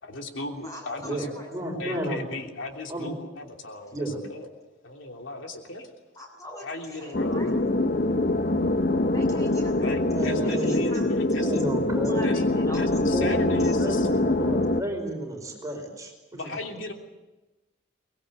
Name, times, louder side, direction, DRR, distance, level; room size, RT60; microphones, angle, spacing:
voice 1, 0.0-1.3 1.8-4.5 4.8-5.9 6.6-7.6 9.8-11.7 12.2-12.4 12.7-14.1 16.3-16.9, left 2 dB, 80° left, 2 dB, 3.2 m, -36 dB
voice 2, 0.6-1.5 1.9-2.0 2.3-2.4 3.0-3.2 6.2-7.5 9.1-9.9 10.4-11.4 12.0-12.9 13.5-13.8, left 1 dB, 15° left, 1 dB, 7.9 m, -43 dB
voice 3, 1.5-2.2 2.9-3.1 3.9-4.2 10.1-10.8 11.4-12.2 13.1-16.5, right 1 dB, 15° right, 2 dB, 4.7 m, -32 dB
sound 1, 7.1-14.8, left 2 dB, 50° left, 0.9 m, -24 dB
24.0 x 21.0 x 8.1 m, 1.1 s
head